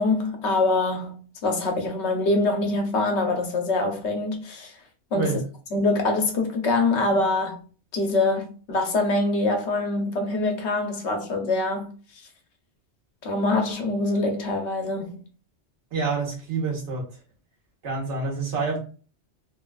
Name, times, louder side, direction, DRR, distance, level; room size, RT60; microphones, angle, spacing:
voice 1, 0.0-4.7 5.1-5.4 5.7-7.6 7.9-11.9 13.2-15.2, left 2 dB, 85° left, 1.0 m, -24 dB
voice 2, 15.9-17.1 17.8-18.8, right 4 dB, 85° right, 1.4 m, -27 dB
3.2 x 2.3 x 2.3 m
omnidirectional pair, 1.1 m